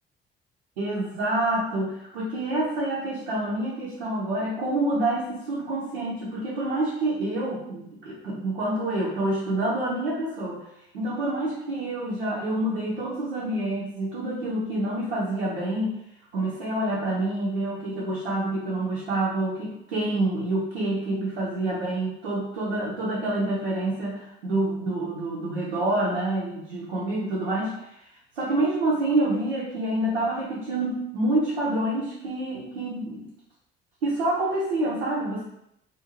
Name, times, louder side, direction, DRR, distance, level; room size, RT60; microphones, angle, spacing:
voice 1, 0.8-10.6 10.9-16.0 16.3-27.7 28.4-33.3 34.0-35.4, right 1 dB, 90° right, -7 dB, 0.5 m, -27 dB
2.4 x 2.2 x 2.9 m, 0.79 s
hypercardioid pair, 45°, 30 cm